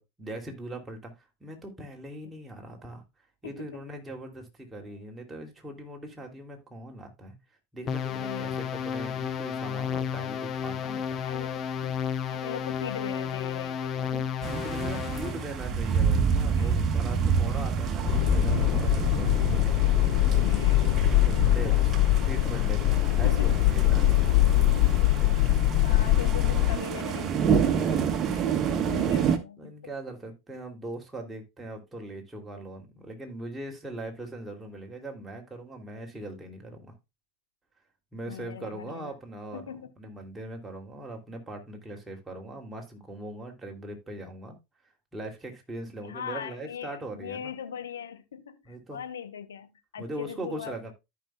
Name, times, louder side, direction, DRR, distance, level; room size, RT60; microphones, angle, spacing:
voice 1, 0.0-3.0 3.4-7.4 7.7-11.2 13.9-19.6 21.1-24.2 29.6-36.9 38.1-44.6 45.1-47.5 48.6-49.0 50.0-50.9, right 1 dB, 15° right, 2.8 m, -40 dB
voice 2, 3.4-3.8 4.9-5.0 8.1-8.7 11.2-14.0 16.6-16.7 20.4-21.2 22.2-22.5 23.2-23.6 25.4-25.5 25.8-29.7 38.3-39.1 39.5-39.9 46.0-50.9, left 8 dB, 90° left, 1.1 m, -40 dB
sound 1, 7.9-15.4, left 7 dB, 40° left, 1.0 m, -32 dB
sound 2, 14.4-29.4, right 6 dB, 40° right, 1.4 m, -28 dB
sound 3, 18.1-26.8, left 15 dB, 60° left, 0.3 m, -23 dB
14.0 x 5.9 x 2.3 m
hypercardioid pair, 90°, 0 cm